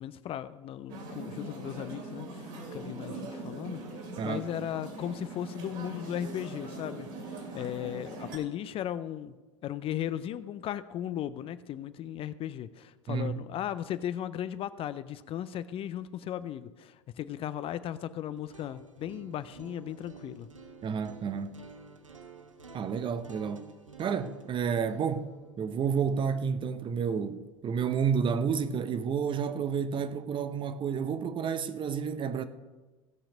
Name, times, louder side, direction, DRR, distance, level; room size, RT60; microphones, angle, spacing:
voice 1, 0.0-3.8 4.2-7.1 7.5-9.3 9.6-20.5, left 11 dB, 35° left, 0.5 m, -36 dB
sound 1, 0.9-8.4, right 2 dB, 50° right, 2.5 m, -41 dB
sound 2, 18.3-28.3, right 4 dB, 90° right, 0.9 m, -51 dB
voice 2, 20.8-21.6 22.7-23.6 24.0-32.4, right 6 dB, 30° right, 0.7 m, -30 dB
16.0 x 5.9 x 5.2 m
figure-of-eight pair, 75°, 16 cm